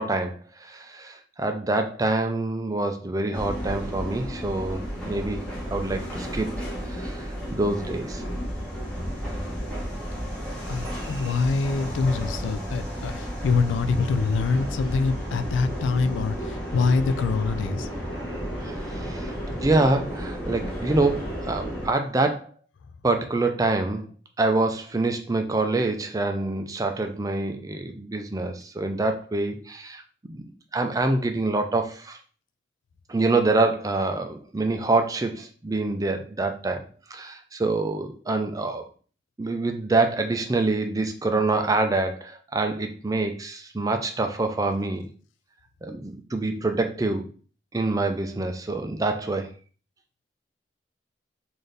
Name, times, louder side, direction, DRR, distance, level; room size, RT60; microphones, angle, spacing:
voice 1, 0.0-5.4 5.7-6.5 7.0-8.2 11.0-11.3 18.6-22.5 23.0-24.0 24.4-30.0 30.3-30.4 30.7-32.2 33.1-36.8 37.1-38.8 39.4-45.0 45.8-47.2 47.7-49.5, right 2 dB, 20° right, 6 dB, 0.4 m, -26 dB
sound 1, 3.3-21.9, equal, 5° left, 1.2 m, -32 dB
voice 2, 10.7-16.4 16.7-17.9, left 4 dB, 80° left, 12 dB, 0.3 m, -24 dB
3.9 x 2.6 x 3.3 m, 0.40 s
head